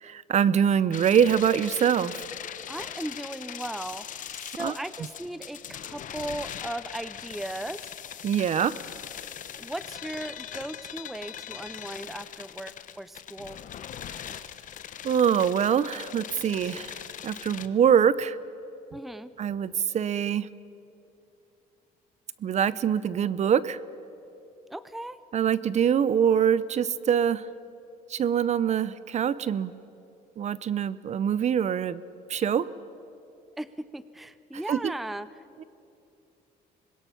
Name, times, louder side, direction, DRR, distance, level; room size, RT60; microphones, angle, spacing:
voice 1, 0.0-2.2 4.6-4.7 8.2-8.8 15.0-16.9 17.2-18.4 19.4-20.5 22.4-23.8 25.3-27.4 28.1-29.7 30.4-32.0 32.3-32.7 34.7-34.9 35.6-35.7, right 8 dB, 40° right, 17 dB, 0.6 m, -24 dB
sound 1, 0.9-17.7, left 9 dB, 50° left, 0.9 m, -41 dB
voice 2, 2.7-4.1 4.3-7.8 9.6-13.6 18.9-19.3 24.7-25.2 33.6-35.3, right 1 dB, ahead, 15 dB, 0.5 m, -37 dB
25.5 x 21.0 x 5.8 m, 2.8 s
cardioid pair, 110°, 17 cm